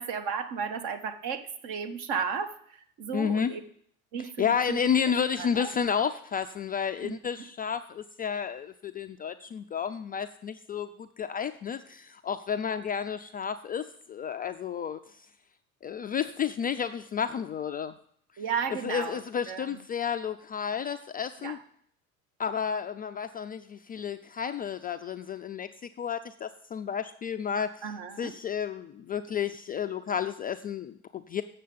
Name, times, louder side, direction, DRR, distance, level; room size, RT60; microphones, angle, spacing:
voice 1, 0.0-3.6 4.1-4.8 5.4-5.7 7.0-7.2 18.4-19.2 19.5-19.8 21.4-21.6 27.8-28.3, right 6 dB, 55° right, 8 dB, 1.3 m, -34 dB
voice 2, 3.1-3.5 4.2-15.2 15.8-17.9 18.8-21.6 22.4-25.7 26.0-27.7 28.2-31.4, left 7 dB, 25° left, 8 dB, 0.3 m, -31 dB
7.7 x 6.7 x 6.9 m, 0.63 s
hypercardioid pair, 75°, 44 cm